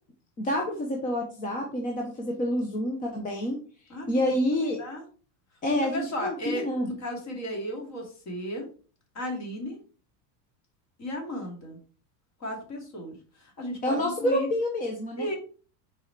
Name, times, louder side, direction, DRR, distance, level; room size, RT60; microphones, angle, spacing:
voice 1, 0.4-3.6 4.1-4.8 5.6-6.9 13.8-15.3, left 1 dB, 15° left, 1 dB, 0.7 m, -28 dB
voice 2, 3.9-4.4 4.8-5.0 5.7-8.7 9.1-9.8 11.0-11.8 12.4-14.5 15.2-15.4, equal, 30° left, 1 dB, 2.6 m, -35 dB
6.1 x 4.5 x 4.6 m, 0.39 s
supercardioid pair, 165°, 49 cm